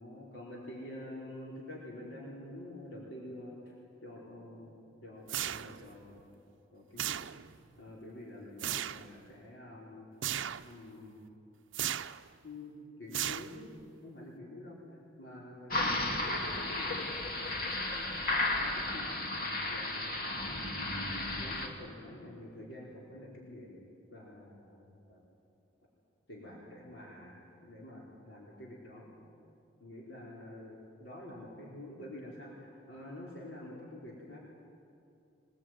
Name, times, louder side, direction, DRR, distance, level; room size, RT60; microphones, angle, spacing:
voice 1, 0.0-3.7 4.0-4.7 5.0-6.3 6.7-7.1 7.8-10.1 10.6-11.2 12.4-12.7 13.0-13.8 14.0-14.8 15.2-19.1 19.7-20.8 21.4-23.8 24.1-25.2 26.3-29.1 29.8-34.4, left 1 dB, 85° left, -5 dB, 4.7 m, -48 dB
sound 1, 5.3-6.0 7.0-7.6 8.6-9.1 10.2-10.7 11.7-12.3 13.1-13.8, right 11 dB, 85° right, 0.6 m, -36 dB
sound 2, 15.7-21.7, left 2 dB, 50° left, 2.5 m, -34 dB
24.5 x 20.0 x 9.4 m, 2.6 s
head